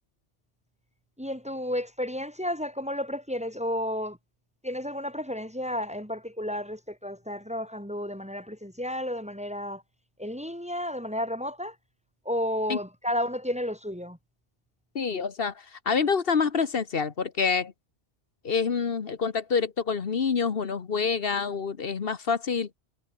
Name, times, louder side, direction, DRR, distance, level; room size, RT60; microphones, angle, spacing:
voice 1, 1.2-4.2 4.6-9.8 10.2-11.8 12.2-14.2, equal, 5° right, 4.4 m, -32 dB
voice 2, 14.9-17.7 18.4-22.7, left 5 dB, 55° left, 1.3 m, -27 dB
omnidirectional pair, 1.2 m